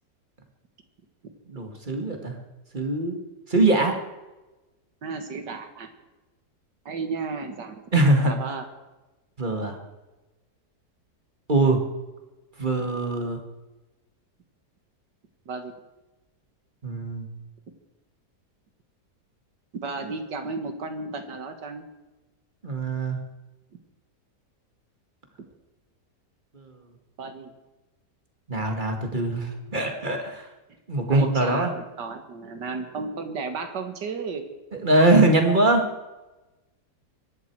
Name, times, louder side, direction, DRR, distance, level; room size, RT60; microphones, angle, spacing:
voice 1, 1.5-2.4 2.7-3.2 3.5-4.0 7.9-8.3 9.4-9.8 11.5-11.8 12.6-13.4 16.8-17.3 22.6-23.2 26.6-26.7 28.5-30.5 30.9-31.7 34.8-35.8, right 2 dB, 30° right, 4 dB, 2.1 m, -22 dB
voice 2, 5.0-5.9 6.9-8.7 15.5-15.7 19.8-21.8 27.2-27.5 31.1-34.5, right 4 dB, 90° right, 7 dB, 2.2 m, -34 dB
24.5 x 11.5 x 4.7 m, 1.1 s
omnidirectional pair, 1.8 m